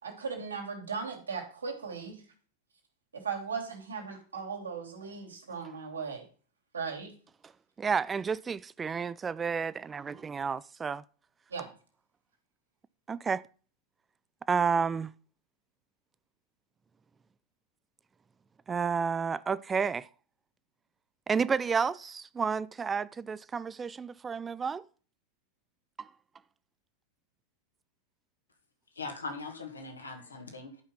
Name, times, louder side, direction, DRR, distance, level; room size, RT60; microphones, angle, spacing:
voice 1, 0.0-2.2 3.1-6.2 6.7-7.1 11.5-11.7, right 5 dB, 75° right, 3.1 m, -37 dB
voice 2, 7.8-11.0 13.1-13.4 14.5-15.1 18.7-20.1 21.3-24.8 26.0-26.1, right 5 dB, 15° right, 0.4 m, -31 dB
voice 3, 29.0-30.8, left 3 dB, 75° left, 2.4 m, -40 dB
12.0 x 5.8 x 5.5 m
figure-of-eight pair, 90°, 0 cm